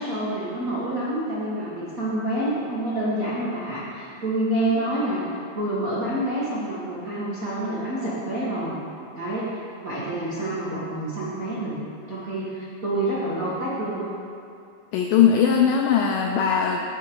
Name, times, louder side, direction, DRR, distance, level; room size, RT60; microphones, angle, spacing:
voice 1, 0.0-5.3 5.5-8.8 9.1-11.8 12.1-14.1, right 1 dB, 60° right, -9 dB, 0.8 m, -27 dB
voice 2, 14.9-16.8, left 7 dB, 85° left, 1 dB, 1.9 m, -19 dB
15.5 x 5.8 x 4.6 m, 2.5 s
omnidirectional pair, 4.5 m